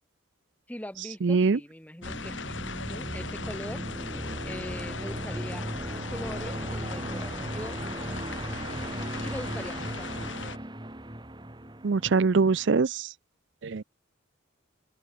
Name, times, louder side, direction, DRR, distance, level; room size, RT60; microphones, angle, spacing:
voice 1, 0.7-3.8 4.4-5.7 6.1-7.9 9.2-10.6, equal, 5° left, 2.3 m, -41 dB
voice 2, 1.2-1.6 11.8-13.1 13.6-13.8, right 4 dB, 60° right, 0.5 m, -23 dB
sound 1, 2.0-10.6, left 4 dB, 65° left, 7.4 m, -39 dB
sound 2, 2.0-12.7, right 1 dB, 20° right, 1.8 m, -37 dB
open air
head